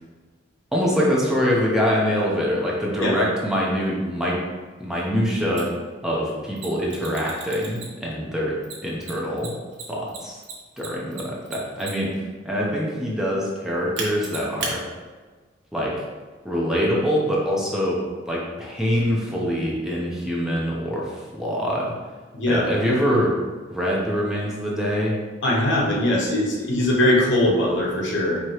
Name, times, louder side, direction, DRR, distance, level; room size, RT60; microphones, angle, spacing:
voice 1, 0.7-4.4 4.8-5.7 6.0-8.6 8.8-9.5 9.9-10.4 10.8-12.2 12.4-14.8 15.7-15.9 16.4-18.0 18.3-22.0 22.5-23.4 23.7-25.2, equal, 5° right, -5 dB, 0.6 m, -24 dB
Mechanisms, 5.6-5.7 6.6-8.1 8.6-12.2 14.0-14.7, right 4 dB, 70° right, 0.8 m, -34 dB
voice 2, 25.4-28.4, left 1 dB, 75° left, -2 dB, 0.9 m, -21 dB
4.7 x 2.9 x 2.9 m, 1.4 s
head